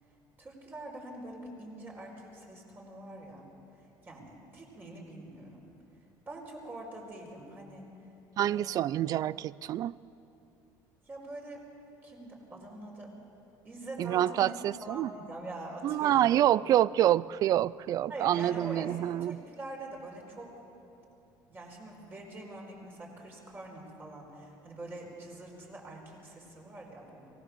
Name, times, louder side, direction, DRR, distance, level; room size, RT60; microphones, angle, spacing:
voice 1, 0.4-3.4 4.0-5.7 6.3-7.9 8.4-8.7 11.1-11.6 12.0-13.1 13.6-16.5 18.1-18.9 19.2-20.5 21.5-27.3, right 1 dB, 25° right, -1 dB, 4.6 m, -44 dB
voice 2, 8.4-9.9 14.0-15.1 15.8-19.4, right 12 dB, 45° right, 21 dB, 0.4 m, -27 dB
23.0 x 18.5 x 6.9 m, 2.8 s
cardioid pair, 135°, 9 cm